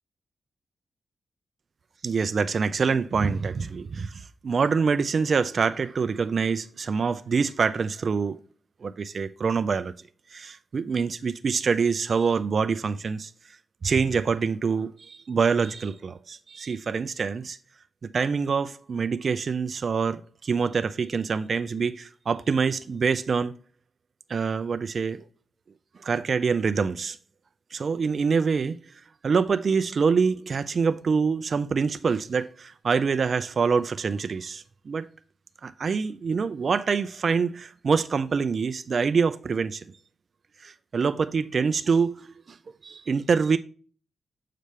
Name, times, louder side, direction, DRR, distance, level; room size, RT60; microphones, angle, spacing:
voice 1, 2.0-8.4 8.8-9.9 10.3-13.3 13.8-17.6 18.1-23.5 24.3-25.2 26.0-27.2 27.7-28.8 29.2-35.1 35.6-39.8 40.6-42.3 42.8-43.6, right 5 dB, 50° right, 0.4 m, -25 dB
6.6 x 5.1 x 3.1 m
cardioid pair, 90°, 0 cm